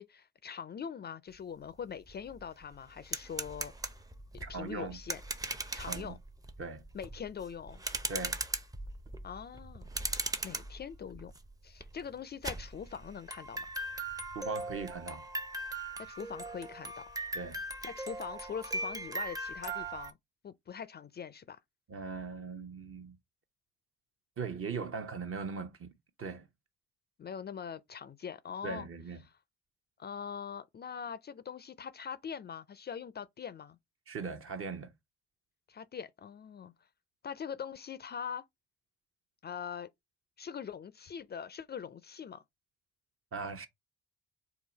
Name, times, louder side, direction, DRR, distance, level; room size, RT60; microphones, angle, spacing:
voice 1, 0.0-3.7 4.3-5.2 5.7-6.2 6.9-7.8 9.2-9.9 10.2-11.3 11.6-13.7 16.0-17.1 17.8-20.2 20.4-21.6 27.2-28.9 29.2-29.3 30.0-33.8 35.7-36.7 37.2-38.4 39.4-39.9 40.4-42.4, left 7 dB, 35° left, 0.4 m, -42 dB
sound 1, 1.7-1.8 2.1-20.1, right 2 dB, 10° right, 0.6 m, -40 dB
voice 2, 4.4-5.0 5.7-6.2 6.6-6.8 8.1-8.4 14.3-15.3 17.3-17.6 21.9-23.2 24.4-25.9 26.2-26.5 28.6-29.2 34.1-34.9 43.3-43.7, right 4 dB, 45° right, 0.9 m, -39 dB
3.8 x 2.3 x 3.9 m
hypercardioid pair, 50°, 30 cm